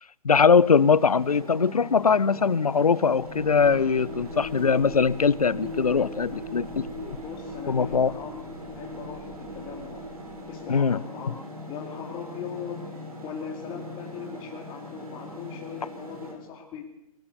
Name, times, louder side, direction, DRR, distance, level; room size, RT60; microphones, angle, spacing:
voice 1, 0.2-7.2 7.7-8.1 10.7-11.0, left 5 dB, 75° left, 0.7 m, -21 dB
sound 1, 0.5-16.3, equal, 75° right, 7.9 m, -41 dB
sound 2, 3.0-10.8, equal, 45° right, 6.9 m, -40 dB
voice 2, 7.1-8.4 8.7-10.0 10.5-12.8 13.2-16.9, left 7 dB, 25° left, 2.7 m, -39 dB
21.5 x 18.0 x 6.7 m
figure-of-eight pair, 125°, 19 cm